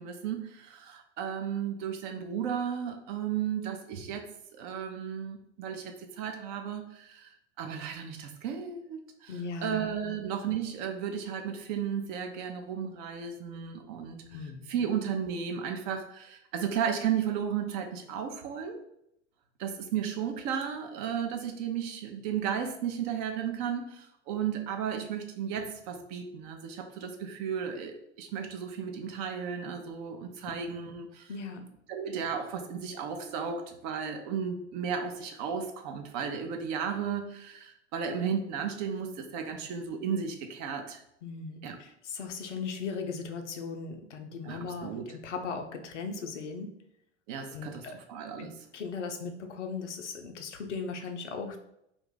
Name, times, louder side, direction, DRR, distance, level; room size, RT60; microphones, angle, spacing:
voice 1, 0.0-9.3 9.6-14.2 14.7-18.8 19.6-31.3 31.6-41.0 41.6-41.8 44.4-45.1 47.3-48.5, right 7 dB, 40° right, 4 dB, 0.4 m, -34 dB
voice 2, 9.3-9.8 14.3-14.7 31.3-31.6 41.2-46.7 47.5-48.0 48.4-48.5 48.7-51.6, left 5 dB, 70° left, 5 dB, 0.5 m, -38 dB
2.5 x 2.3 x 3.6 m, 0.78 s
figure-of-eight pair, 80°, 37 cm